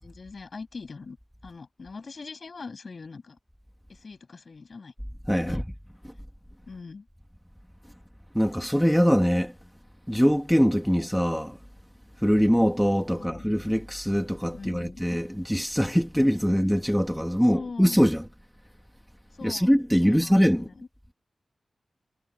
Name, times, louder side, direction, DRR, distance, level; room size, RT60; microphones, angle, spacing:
voice 1, 0.0-1.2 1.4-3.4 3.9-4.9 5.4-5.6 6.7-7.1 13.2-13.4 14.5-15.0 16.5-16.7 17.4-18.0 19.3-19.7 20.0-20.9, left 4 dB, 55° left, 7.2 m, -42 dB
voice 2, 5.3-5.6 8.4-9.5 10.1-11.6 12.2-18.2 19.4-20.7, equal, ahead, 1.7 m, -23 dB
wide cardioid pair, 95°, 0 cm